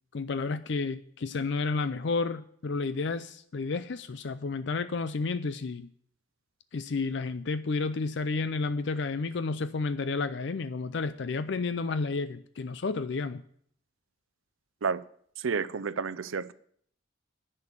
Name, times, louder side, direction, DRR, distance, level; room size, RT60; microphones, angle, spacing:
voice 1, 0.1-5.9 6.7-13.4, left 4 dB, 60° left, 0.5 m, -31 dB
voice 2, 15.4-16.5, right 5 dB, 85° right, 0.5 m, -30 dB
10.5 x 6.7 x 8.2 m
head